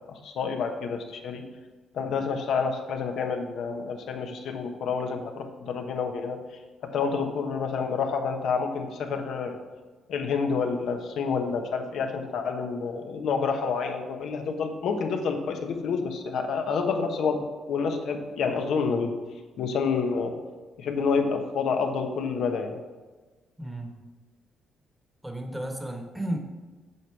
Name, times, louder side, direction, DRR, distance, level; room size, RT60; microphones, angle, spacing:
voice 1, 0.1-1.4 1.9-6.4 6.8-9.6 10.1-19.2 19.6-20.3 20.8-22.8, left 5 dB, 75° left, 4 dB, 1.1 m, -28 dB
voice 2, 23.6-24.0 25.2-26.4, right 1 dB, 10° right, 3 dB, 1.3 m, -33 dB
8.3 x 5.4 x 4.7 m, 1.3 s
cardioid pair, 90°, 0 cm